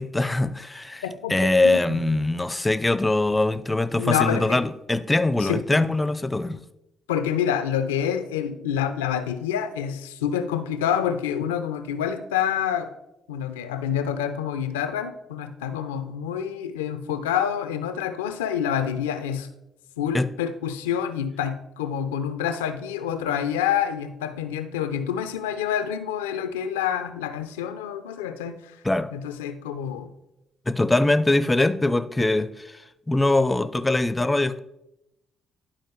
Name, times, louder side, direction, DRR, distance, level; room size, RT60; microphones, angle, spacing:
voice 1, 0.0-1.0 1.3-6.6 20.1-20.3 28.8-29.1 30.7-32.8 33.1-34.6, left 2 dB, 15° left, 0.6 m, -22 dB
voice 2, 1.0-2.0 4.0-4.6 5.4-5.8 7.1-12.9 13.3-19.5 20.0-28.8 29.1-30.1, left 9 dB, 90° left, 0.5 m, -27 dB
11.5 x 4.5 x 4.6 m
hypercardioid pair, 50°, 0 cm